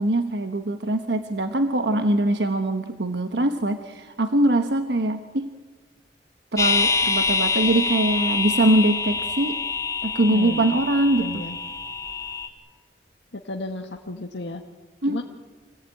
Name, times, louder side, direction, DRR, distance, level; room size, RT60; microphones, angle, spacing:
voice 1, 0.0-5.5 6.5-9.5 10.0-11.4 15.0-15.2, right 1 dB, 70° right, 7 dB, 1.2 m, -22 dB
sound 1, 6.6-12.5, left 4 dB, 20° left, 2.0 m, -25 dB
voice 2, 10.3-10.7 11.2-11.5 13.4-14.6 15.0-15.2, left 2 dB, 80° left, 2 dB, 1.6 m, -33 dB
27.0 x 18.0 x 9.0 m, 1.4 s
head